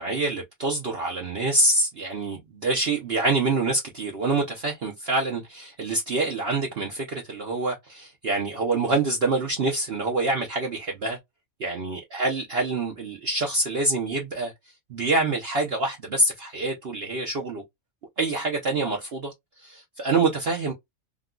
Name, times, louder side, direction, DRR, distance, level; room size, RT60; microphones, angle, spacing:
voice 1, 0.0-11.2 11.6-14.5 14.9-17.6 18.2-19.3 19.6-20.7, right 2 dB, 50° right, 0.9 m, -26 dB
3.7 x 2.2 x 2.3 m
omnidirectional pair, 1.5 m